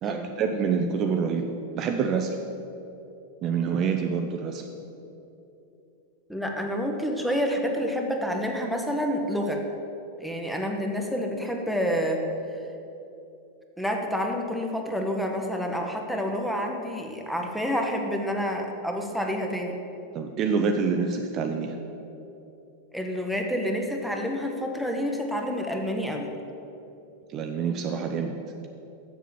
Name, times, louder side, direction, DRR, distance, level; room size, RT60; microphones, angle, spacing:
voice 1, 0.0-2.4 3.4-4.6 20.1-21.8 27.3-28.3, right 6 dB, 35° right, 4 dB, 0.6 m, -27 dB
voice 2, 6.3-9.6 10.2-12.2 13.8-19.8 22.9-26.3, equal, ahead, 2 dB, 1.1 m, -28 dB
7.3 x 7.1 x 7.2 m, 2.9 s
figure-of-eight pair, 90°, 0 cm